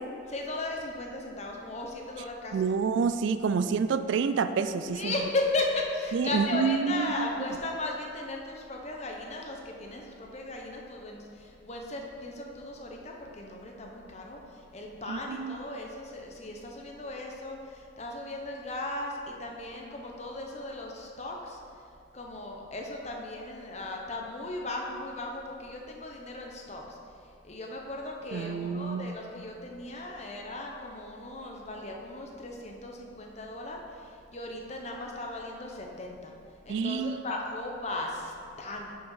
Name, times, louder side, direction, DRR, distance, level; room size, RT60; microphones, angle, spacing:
voice 1, 0.3-2.7 4.9-21.6 22.1-36.3 36.6-38.9, left 2 dB, 35° left, 0 dB, 0.8 m, -36 dB
voice 2, 2.5-5.1 6.1-7.3 15.1-15.6 28.3-29.1 36.7-37.2, right 5 dB, 65° right, 11 dB, 0.3 m, -28 dB
6.1 x 5.9 x 5.5 m, 2.5 s
head